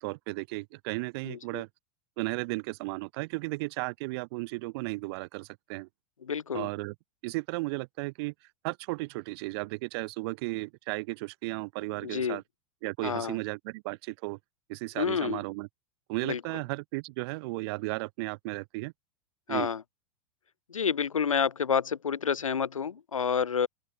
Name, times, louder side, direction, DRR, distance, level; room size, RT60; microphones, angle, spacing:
voice 1, 0.0-1.7 2.2-5.9 6.5-6.9 7.2-8.3 8.6-12.4 12.8-14.4 14.7-15.7 16.1-18.9 19.5-19.7, right 25 dB, 50° right, 2.4 m, -34 dB
voice 2, 1.2-1.6 6.2-6.7 12.0-12.4 13.0-13.4 15.0-15.4 16.2-16.4 19.5-19.8 20.7-23.7, left 7 dB, 75° left, 1.2 m, -29 dB
open air
figure-of-eight pair, 90°, 17 cm